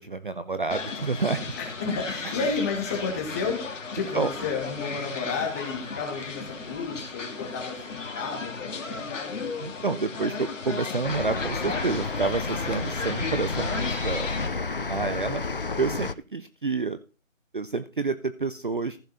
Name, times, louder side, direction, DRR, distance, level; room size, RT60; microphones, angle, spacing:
voice 1, 0.0-1.4 2.2-2.4 4.1-4.3 9.6-14.3 14.9-15.4 15.8-17.0 17.5-19.0, right 4 dB, 40° right, 12 dB, 0.6 m, -29 dB
sound 1, 0.7-14.5, left 4 dB, 65° left, 2.4 m, -35 dB
voice 2, 1.6-3.6 3.9-9.4 15.0-15.8, left 4 dB, 10° left, 2 dB, 1.6 m, -32 dB
sound 2, 11.0-16.1, left 3 dB, 45° left, 0.4 m, -31 dB
14.5 x 7.1 x 4.0 m, 0.32 s
figure-of-eight pair, 165°, 40 cm